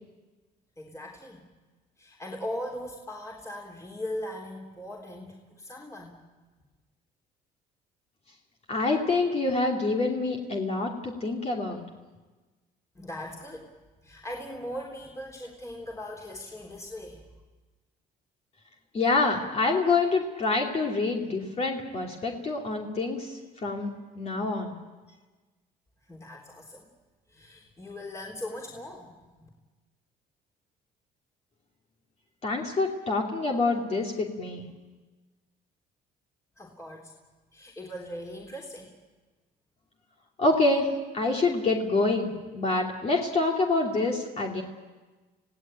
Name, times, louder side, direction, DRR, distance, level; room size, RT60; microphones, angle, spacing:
voice 1, 0.8-1.5 2.0-6.2 12.9-13.7 14.0-17.3 26.0-26.9 27.3-29.5 36.6-37.1 37.5-38.9, left 1 dB, 20° left, -1 dB, 3.5 m, -39 dB
voice 2, 8.7-11.8 18.9-23.9 24.2-24.8 32.4-34.7 40.4-40.9 41.1-44.6, left 3 dB, 40° left, 0 dB, 2.8 m, -26 dB
28.5 x 17.0 x 9.0 m, 1.3 s
cardioid pair, 110°, 17 cm